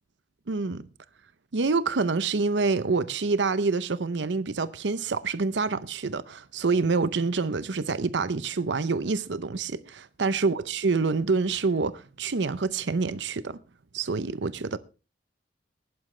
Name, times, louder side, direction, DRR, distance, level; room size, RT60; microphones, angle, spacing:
voice 1, 0.5-0.8 1.5-13.6 13.9-14.8, right 4 dB, 75° right, 0.7 m, -27 dB
16.5 x 11.5 x 3.2 m
head